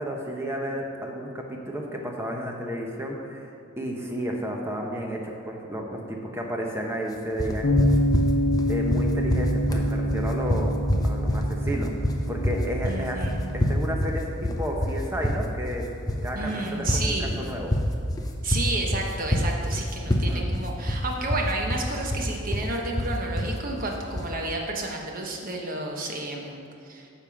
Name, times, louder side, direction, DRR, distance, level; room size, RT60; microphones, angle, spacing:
voice 1, 0.0-3.5 3.8-7.7 8.7-10.8 11.0-13.2 13.7-15.8 16.2-17.7 20.3-20.5, equal, 10° right, 0 dB, 0.7 m, -32 dB
sound 1, 7.4-24.4, left 1 dB, 15° left, 0.5 m, -26 dB
Bass guitar, 7.6-13.9, equal, 75° left, 0.8 m, -27 dB
voice 2, 12.8-13.5 16.3-17.4 18.4-27.1, right 2 dB, 40° right, 0 dB, 1.0 m, -31 dB
9.6 x 3.7 x 7.0 m, 2.7 s
head